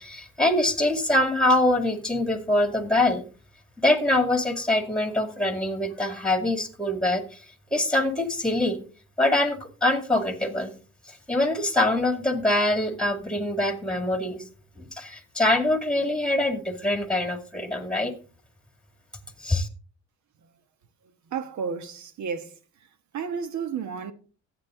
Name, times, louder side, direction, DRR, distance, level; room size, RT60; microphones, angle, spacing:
voice 1, 0.0-3.2 3.8-7.4 7.7-8.8 9.2-10.7 11.3-14.4 14.8-18.1 19.4-19.7, left 1 dB, 5° left, 2.1 m, -24 dB
voice 2, 21.3-22.6 23.1-24.1, right 6 dB, 70° right, 1.3 m, -32 dB
13.5 x 8.4 x 3.7 m
cardioid pair, 90°, 30 cm